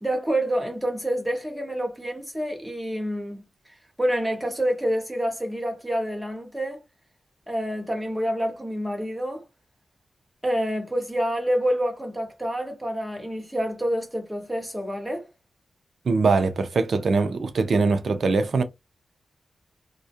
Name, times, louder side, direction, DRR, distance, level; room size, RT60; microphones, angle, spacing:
voice 1, 0.0-6.8 7.5-9.4 10.4-15.3, equal, 5° right, 0.9 m, -27 dB
voice 2, 16.1-18.6, right 4 dB, 65° right, 0.4 m, -22 dB
2.3 x 2.1 x 2.7 m
wide cardioid pair, 100°, 0 cm